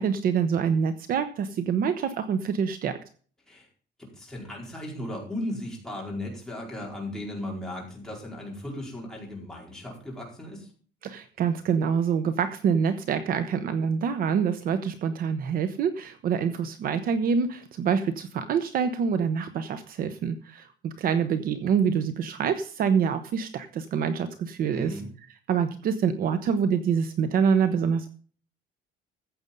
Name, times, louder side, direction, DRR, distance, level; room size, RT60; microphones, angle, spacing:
voice 1, 0.0-3.0 11.0-25.0 25.5-28.1, right 7 dB, 50° right, 10 dB, 1.0 m, -26 dB
voice 2, 4.0-10.7 24.7-25.1, left 1 dB, 5° left, -3 dB, 4.7 m, -36 dB
14.5 x 7.9 x 5.4 m, 0.42 s
cardioid pair, 175°, 19 cm